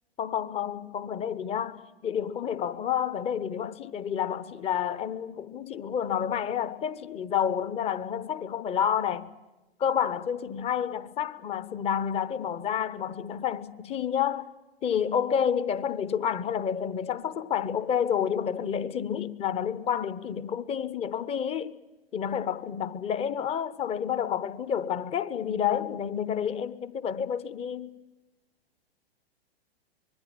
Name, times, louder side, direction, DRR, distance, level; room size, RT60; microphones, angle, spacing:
voice 1, 0.2-9.3 9.8-14.5 14.8-21.8 22.1-27.9, left 8 dB, 20° left, 0.9 m, -29 dB
25.0 x 21.5 x 8.6 m
figure-of-eight pair, 105°, 32 cm